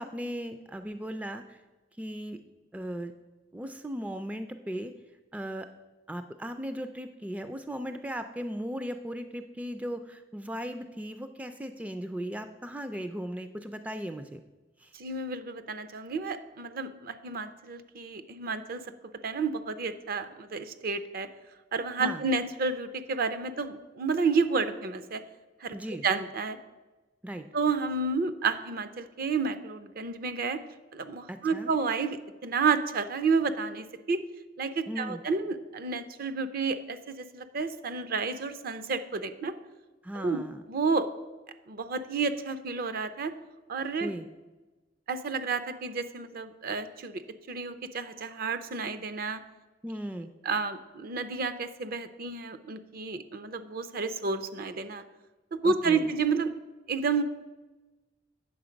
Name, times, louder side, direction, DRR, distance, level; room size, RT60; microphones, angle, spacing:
voice 1, 0.0-1.6 2.0-2.4 2.7-3.1 3.5-4.9 5.3-5.7 6.1-14.4 14.8-14.9 22.0-22.2 25.7-26.0 27.2-27.4 31.3-31.7 34.9-35.2 40.0-40.6 44.0-44.3 49.8-50.3 55.6-56.1, equal, 10° right, 9 dB, 0.3 m, -37 dB
voice 2, 14.9-18.8 19.2-21.3 21.7-25.2 25.6-25.8 26.0-26.6 27.5-30.6 30.9-34.2 34.6-39.5 40.1-40.4 40.7-41.1 41.7-43.3 43.7-44.1 45.1-47.2 47.5-49.4 50.4-55.0 55.5-56.5 56.9-57.2, right 4 dB, 55° right, 11 dB, 0.6 m, -30 dB
8.7 x 6.5 x 5.1 m, 1.2 s
head